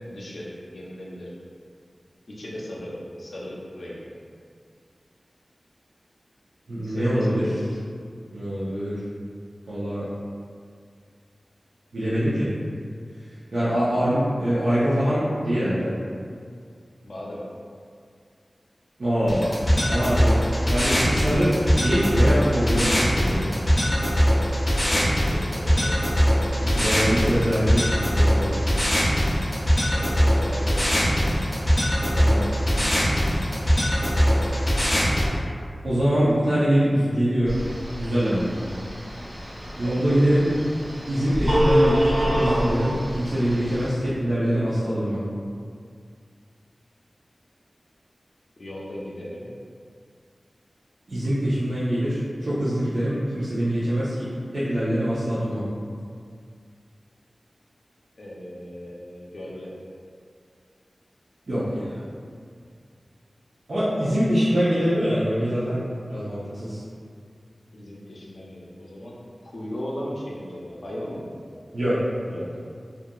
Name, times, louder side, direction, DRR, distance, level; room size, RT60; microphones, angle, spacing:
voice 1, 0.1-1.3 2.3-4.0 6.8-7.7 17.0-17.4 24.8-26.0 27.2-27.5 29.9-31.3 39.8-40.0 48.6-49.5 58.2-59.7 67.7-69.2 69.4-71.4, equal, 70° left, -6 dB, 0.5 m, -37 dB
voice 2, 6.7-7.4 8.3-9.0 9.7-10.1 11.9-12.5 13.5-15.9 19.0-19.6 19.9-20.4 20.7-23.5 26.6-27.8 28.1-28.7 32.1-32.5 32.7-33.0 35.8-37.5 38.0-38.5 39.8-40.5 41.1-45.2 51.1-55.6 61.5-61.9 63.7-65.8 66.1-66.8 71.7-72.0 72.3-72.5, equal, 80° right, -13 dB, 0.5 m, -24 dB
sound 1, 19.3-35.3, equal, 25° left, 0.6 m, -21 dB
Telephone, 37.5-43.9, equal, 50° right, 0.9 m, -26 dB
2.7 x 2.3 x 2.2 m, 2.2 s
wide cardioid pair, 80°, 0 cm